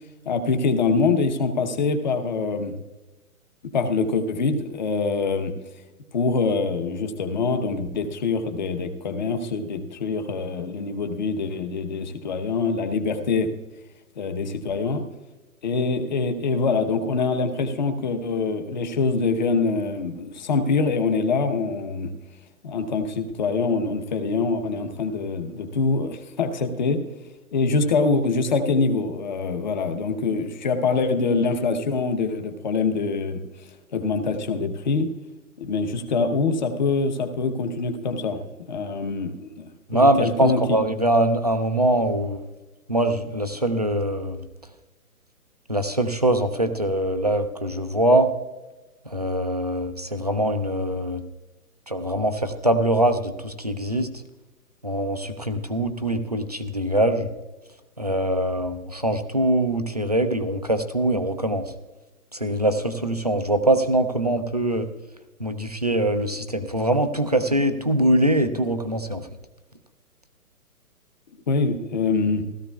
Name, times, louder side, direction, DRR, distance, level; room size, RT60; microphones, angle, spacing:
voice 1, 0.3-2.8 3.6-5.5 6.1-13.5 14.2-15.0 15.6-22.1 22.6-27.0 27.5-33.4 33.9-35.1 35.6-38.4 38.7-40.6 71.5-72.4, left 4 dB, 30° left, 6 dB, 0.9 m, -24 dB
voice 2, 39.9-42.4 42.9-44.4 45.7-48.3 49.1-51.2 51.9-54.1 54.8-57.3 58.0-61.6 62.3-64.9 65.4-69.2, right 1 dB, 30° right, 7 dB, 0.4 m, -23 dB
16.5 x 13.5 x 2.3 m, 1.1 s
hypercardioid pair, 170°, 45 cm